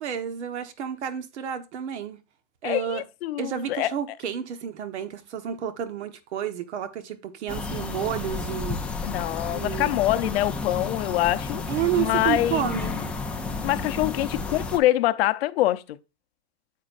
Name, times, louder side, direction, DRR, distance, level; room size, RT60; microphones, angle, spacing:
voice 1, 0.0-2.2 2.6-3.0 3.4-8.8 9.5-9.9 11.7-13.0, right 9 dB, 85° right, 1.4 m, -30 dB
voice 2, 2.6-3.9 9.0-11.6 11.9-13.0 13.6-16.0, left 15 dB, 65° left, 0.7 m, -25 dB
sound 1, 7.5-14.8, left 3 dB, 5° left, 0.4 m, -32 dB
9.4 x 7.4 x 2.6 m
supercardioid pair, 160°, 33 cm